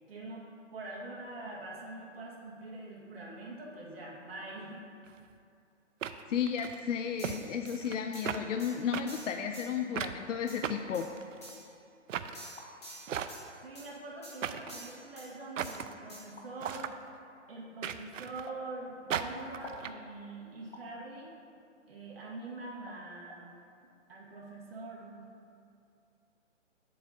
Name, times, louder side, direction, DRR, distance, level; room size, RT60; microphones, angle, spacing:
voice 1, 0.1-4.8 13.6-16.9 17.5-21.3 21.9-23.6 24.1-25.3, right 2 dB, 50° right, -4 dB, 1.7 m, -44 dB
sound 1, 5.1-5.2 6.0-6.8 7.2-7.4 7.7-8.0 8.3-8.4 8.9-9.0 10.0-10.2 10.6-11.5 12.1-12.4 13.1-13.6 14.4-14.8 15.6-15.9 16.6-16.9 17.8-18.5 19.1-19.9, right 8 dB, 80° right, 0.5 m, -36 dB
voice 2, 6.3-11.1, left 7 dB, 75° left, 5 dB, 0.5 m, -33 dB
sound 2, 7.2-7.8 8.1-8.3 8.6-8.7 9.1-9.7 10.5-10.6 10.9-11.1 11.4-11.6 12.3-13.4 13.7-13.9 14.2-14.3 14.7-15.3 15.6-15.8 16.1-16.2, right 1 dB, 20° left, 1.4 m, -48 dB
sound 3, 12.3-12.7 13.6-13.7 14.5-14.8 16.4-16.5 18.5-18.7 19.6-19.9 20.7-20.9 22.2-22.3 22.9-23.0 23.3-23.4, left 1 dB, 50° left, 1.0 m, -49 dB
8.5 x 7.6 x 2.7 m, 2.5 s
hypercardioid pair, 175°, 38 cm